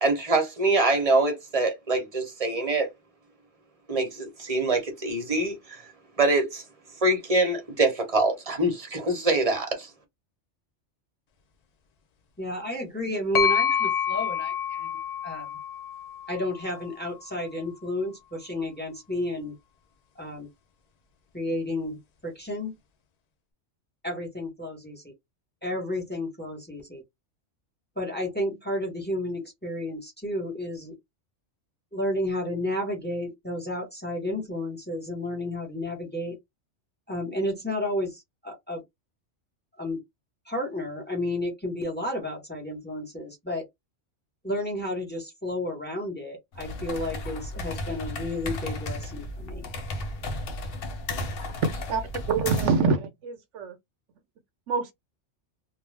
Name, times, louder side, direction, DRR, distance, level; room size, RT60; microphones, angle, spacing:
voice 1, 0.0-2.9 3.9-5.8 6.2-6.6 7.0-9.9, right 2 dB, 35° right, 0.9 m, -24 dB
voice 2, 12.4-15.0 15.2-15.6 16.3-19.5 20.1-20.5 21.3-22.0 22.2-22.8 24.0-25.1 25.6-27.0 28.0-31.0 31.9-36.3 37.1-38.8 39.8-40.0 40.5-43.6 44.4-49.7, left 1 dB, 10° left, 0.9 m, -32 dB
sound 1, 13.3-17.1, left 8 dB, 80° left, 0.3 m, -28 dB
sound 2, 46.5-52.9, left 2 dB, 60° left, 0.8 m, -34 dB
voice 3, 52.3-53.7 54.7-54.9, right 4 dB, 80° right, 1.0 m, -25 dB
2.4 x 2.3 x 3.2 m
omnidirectional pair, 1.2 m